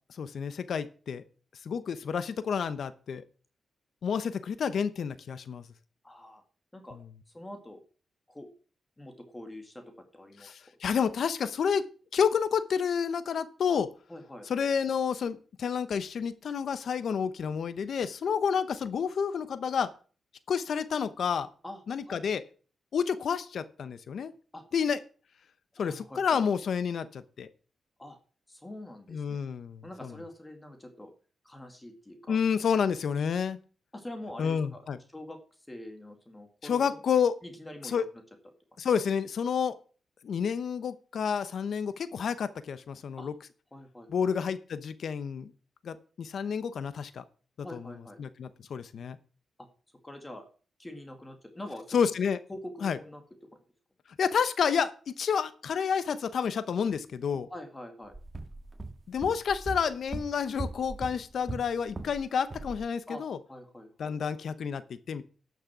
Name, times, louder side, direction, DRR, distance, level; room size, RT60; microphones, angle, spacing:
voice 1, 0.2-1.2 1.6-3.2 4.0-5.6 10.4-11.9 12.1-13.9 14.5-19.9 20.5-21.5 21.9-22.4 22.9-24.3 24.7-25.0 25.8-27.5 29.1-30.1 32.3-33.6 34.4-35.0 36.6-37.3 37.8-38.0 38.8-39.7 40.2-43.3 44.1-45.5 45.8-47.2 47.7-47.8 48.2-49.2 51.9-52.4 52.8-53.0 54.2-57.5 59.1-63.4 64.0-65.2, left 7 dB, 70° left, 14 dB, 0.8 m, -29 dB
voice 2, 6.0-6.4 6.7-7.0 7.3-7.8 8.3-8.5 9.0-10.5 14.1-14.5 21.6-21.8 22.1-22.2 24.5-24.6 25.8-26.4 28.0-28.2 28.5-29.4 29.8-31.1 31.4-32.4 33.9-34.8 35.1-35.4 35.7-37.0 37.4-38.0 43.2-43.3 43.7-44.3 47.6-48.2 50.0-50.5 50.8-52.0 52.5-53.2 57.5-58.1 63.1-63.2 63.5-64.2, left 1 dB, 15° left, 5 dB, 2.2 m, -44 dB
sound 1, 58.1-62.2 62.5-62.8, right 2 dB, 25° right, 1.6 m, -39 dB
12.0 x 6.5 x 6.0 m, 0.39 s
cardioid pair, 90°, 0 cm